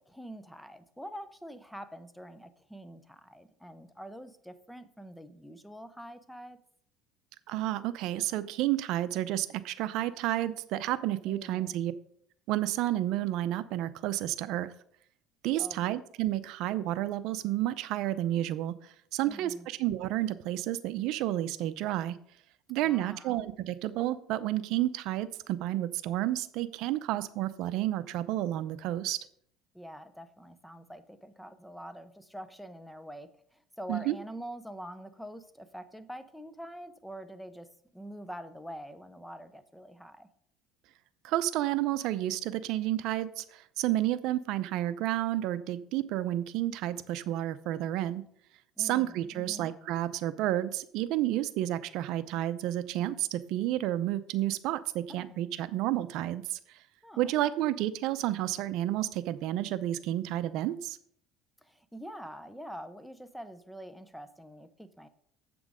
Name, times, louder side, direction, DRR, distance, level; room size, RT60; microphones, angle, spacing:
voice 1, 0.0-6.6 11.2-11.8 15.6-16.0 19.3-19.7 22.8-23.4 29.7-40.3 48.8-49.7 55.1-55.4 57.0-57.6 61.6-65.1, equal, ahead, 11 dB, 0.7 m, -45 dB
voice 2, 7.5-11.9 12.5-14.7 15.4-22.2 22.7-29.2 33.9-34.1 41.2-48.2 48.8-56.8 57.2-61.0, right 14 dB, 65° right, 14 dB, 0.6 m, -31 dB
8.2 x 6.1 x 5.0 m, 0.65 s
cardioid pair, 115°, 0 cm